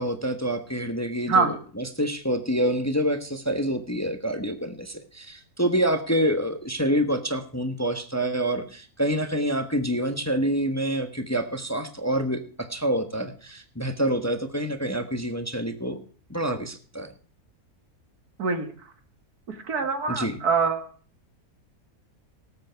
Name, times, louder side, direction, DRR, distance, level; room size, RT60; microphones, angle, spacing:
voice 1, 0.0-16.0 16.3-17.1 20.1-20.4, right 1 dB, 10° left, 7 dB, 1.1 m, -27 dB
voice 2, 18.4-18.7 19.5-20.9, right 4 dB, 80° right, 8 dB, 2.2 m, -24 dB
18.5 x 8.2 x 4.6 m, 0.43 s
omnidirectional pair, 1.6 m